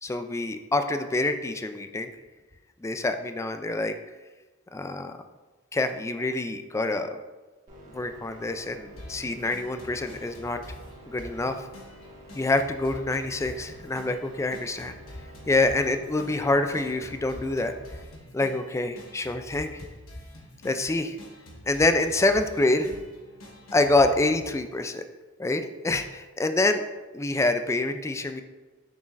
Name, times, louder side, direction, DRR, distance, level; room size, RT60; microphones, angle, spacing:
voice 1, 0.0-2.1 2.8-3.9 4.7-5.2 5.7-7.1 7.9-10.6 11.1-11.6 12.3-15.0 15.5-17.7 18.3-19.9 20.6-21.2 21.7-23.0 23.7-25.0 25.4-26.8 27.1-28.4, left 2 dB, 15° left, 8 dB, 0.3 m, -26 dB
sound 1, 7.7-18.0, right 1 dB, 40° right, 1.7 m, -49 dB
sound 2, 9.0-24.5, left 1 dB, 80° left, 1.3 m, -46 dB
7.0 x 6.3 x 2.5 m, 1.2 s
head